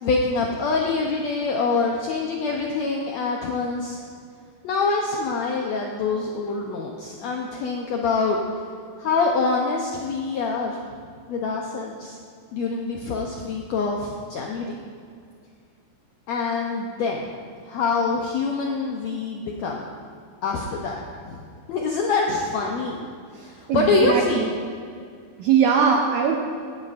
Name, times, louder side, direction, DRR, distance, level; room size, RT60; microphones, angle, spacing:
voice 1, 0.0-4.0 4.6-8.4 9.0-10.8 11.3-12.2 12.5-14.8 16.3-17.2 17.6-19.8 20.4-21.4 21.7-23.1 23.4-24.5, left 4 dB, 80° left, 0 dB, 1.6 m, -25 dB
voice 2, 23.4-24.5 25.4-26.4, right 6 dB, 80° right, 1 dB, 1.7 m, -21 dB
17.5 x 10.0 x 2.5 m, 2.3 s
omnidirectional pair, 4.1 m